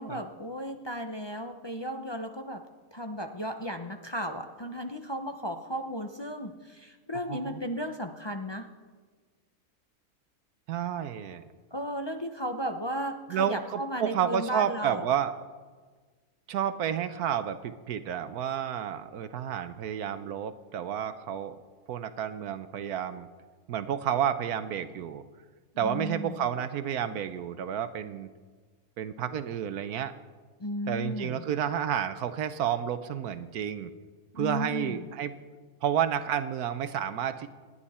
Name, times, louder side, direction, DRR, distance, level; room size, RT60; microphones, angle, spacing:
voice 1, 0.0-2.6 2.9-8.7 11.7-15.1 25.8-26.5 30.6-31.4 34.3-35.0, equal, 30° left, 4 dB, 0.5 m, -35 dB
voice 2, 7.3-7.6 10.7-11.4 13.3-15.3 16.5-21.6 21.9-23.3 23.7-25.2 25.8-28.3 29.0-30.1 30.9-33.9 34.4-35.4 35.8-37.5, right 9 dB, 75° right, 11 dB, 1.2 m, -30 dB
28.0 x 10.0 x 4.3 m, 1.4 s
omnidirectional pair, 1.6 m